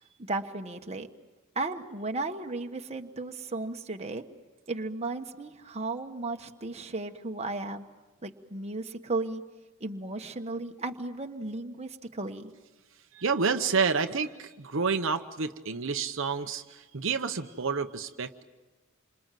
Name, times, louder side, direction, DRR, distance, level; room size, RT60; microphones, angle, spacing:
voice 1, 0.3-1.1 1.5-4.2 4.7-7.9 8.2-9.4 9.8-12.5, right 2 dB, 30° right, 4 dB, 1.3 m, -35 dB
voice 2, 13.1-18.4, right 5 dB, 65° right, 6 dB, 0.9 m, -29 dB
28.0 x 26.5 x 7.7 m, 1.2 s
head